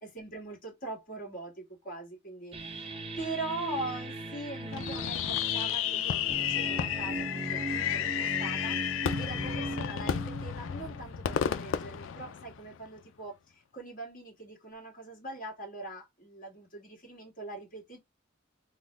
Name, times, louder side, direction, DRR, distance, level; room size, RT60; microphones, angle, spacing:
voice 1, 0.0-18.0, right 2 dB, 40° left, 1.7 m, -42 dB
sound 1, 2.5-11.9, right 2 dB, 25° right, 0.6 m, -39 dB
Fireworks, 4.7-12.9, left 9 dB, 70° left, 0.4 m, -32 dB
3.6 x 2.2 x 3.2 m
head